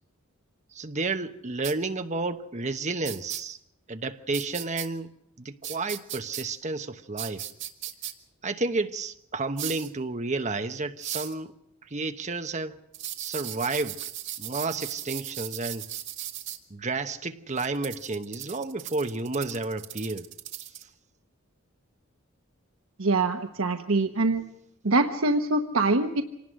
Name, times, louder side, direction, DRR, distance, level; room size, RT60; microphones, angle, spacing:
voice 1, 0.7-3.6 3.9-7.5 8.4-11.5 11.8-12.8 13.2-14.1 14.4-15.9 16.7-20.3, right 3 dB, 35° right, 1.0 m, -31 dB
sound 1, 1.6-1.7 3.0-3.4 4.3-4.9 5.6-6.4 7.2-8.1 9.6-9.9 11.0-11.3 12.9-16.6 17.6-20.8, right 12 dB, 60° right, 2.0 m, -37 dB
voice 2, 23.0-24.4 24.8-26.2, right 2 dB, 80° right, 1.1 m, -24 dB
26.0 x 19.0 x 6.4 m
head